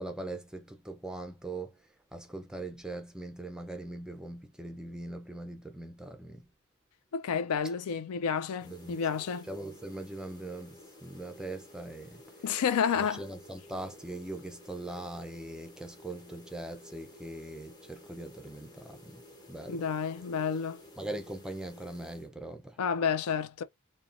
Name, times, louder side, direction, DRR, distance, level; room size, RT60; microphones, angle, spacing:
voice 1, 0.0-1.7 2.1-6.5 8.7-9.0 9.5-12.2 13.0-19.2 19.5-19.9 21.0-22.8, right 2 dB, 5° right, 0.4 m, -41 dB
voice 2, 7.1-9.5 12.4-13.2 19.7-20.8 22.8-23.6, left 7 dB, 80° left, 0.4 m, -30 dB
sound 1, 8.6-22.3, left 1 dB, 20° left, 1.0 m, -53 dB
2.7 x 2.2 x 2.4 m
head